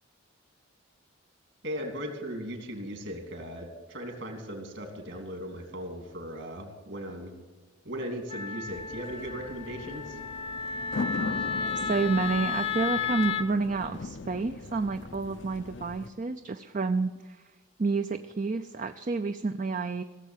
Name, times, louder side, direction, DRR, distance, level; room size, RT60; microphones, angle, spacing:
voice 1, 1.6-7.3 7.8-10.2, equal, 60° right, 3 dB, 2.9 m, -38 dB
Wind instrument woodwind instrument, 8.3-13.5, left 6 dB, 25° left, 0.8 m, -33 dB
sound 1, 8.7-16.1, left 4 dB, 60° left, 0.6 m, -39 dB
voice 2, 10.8-17.4 17.8-20.0, right 4 dB, 40° right, 9 dB, 0.4 m, -30 dB
17.0 x 7.3 x 9.1 m, 1.3 s
head